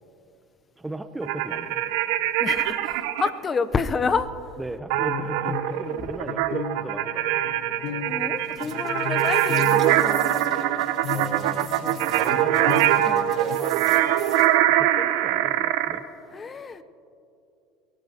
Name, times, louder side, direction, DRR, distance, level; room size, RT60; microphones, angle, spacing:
voice 1, 0.8-1.9 4.6-7.3 11.1-12.8 13.3-13.9 14.7-16.0, right 2 dB, 10° right, 11 dB, 0.6 m, -37 dB
sound 1, 1.2-3.3 4.9-16.0, right 12 dB, 75° right, 0.7 m, -23 dB
voice 2, 2.4-4.3 5.7-6.1 8.0-10.4 13.0-13.3 16.3-16.8, left 5 dB, 25° left, 12 dB, 0.7 m, -29 dB
sound 2, 4.9-10.7 11.0-13.6, left 6 dB, 75° left, 0.7 m, -35 dB
sound 3, 8.4-14.5, right 7 dB, 40° right, 4.0 m, -43 dB
23.0 x 18.0 x 2.9 m, 2.6 s
supercardioid pair, 105°, 0 cm